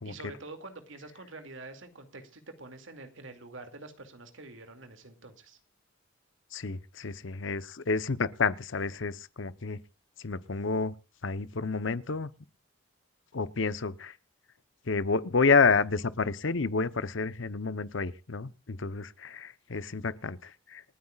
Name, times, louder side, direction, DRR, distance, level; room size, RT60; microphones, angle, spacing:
voice 1, 0.0-5.6, right 2 dB, 70° right, 2.4 m, -46 dB
voice 2, 6.5-9.8 10.2-10.9 11.2-12.3 13.3-14.1 14.9-20.8, left 4 dB, 70° left, 0.8 m, -29 dB
28.5 x 9.7 x 2.4 m
head